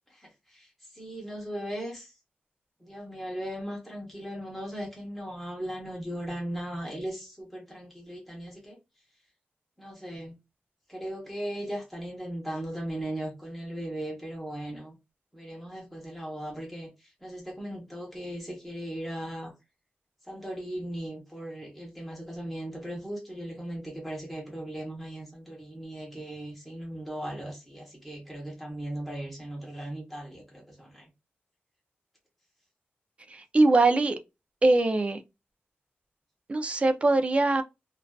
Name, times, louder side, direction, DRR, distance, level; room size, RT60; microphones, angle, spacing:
voice 1, 0.1-2.1 2.8-8.8 9.8-10.4 10.9-15.0 15.3-19.5 20.3-31.1, right 1 dB, ahead, 0.9 m, -38 dB
voice 2, 33.3-34.2 34.6-35.2 36.5-37.6, right 2 dB, 30° right, 0.3 m, -22 dB
2.4 x 2.3 x 2.2 m
wide cardioid pair, 165°, 4 cm